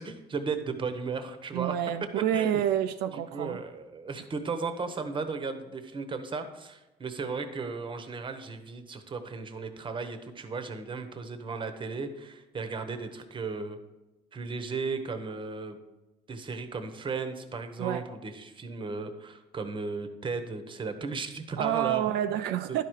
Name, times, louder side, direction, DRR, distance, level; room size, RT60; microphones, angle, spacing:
voice 1, 0.0-1.7 2.1-2.6 3.1-13.8 14.3-15.8 16.3-22.3 22.7-22.8, right 4 dB, 30° right, 0.9 m, -35 dB
voice 2, 1.5-3.6 17.8-18.1 21.6-22.8, right 11 dB, 80° right, 0.4 m, -28 dB
11.0 x 4.9 x 4.6 m
cardioid pair, 110°, 17 cm